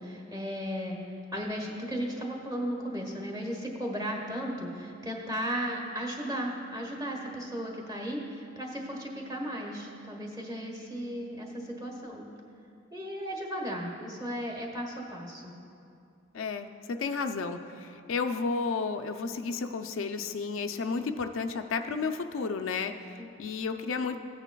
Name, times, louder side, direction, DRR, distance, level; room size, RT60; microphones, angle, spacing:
voice 1, 0.0-12.3 12.9-15.5 23.2-23.5, equal, 15° right, 0 dB, 1.2 m, -35 dB
sound 1, 2.6-12.1, right 12 dB, 85° right, 0.4 m, -54 dB
voice 2, 16.3-24.2, left 4 dB, 75° left, 6 dB, 0.4 m, -32 dB
15.0 x 9.0 x 2.3 m, 2.5 s
head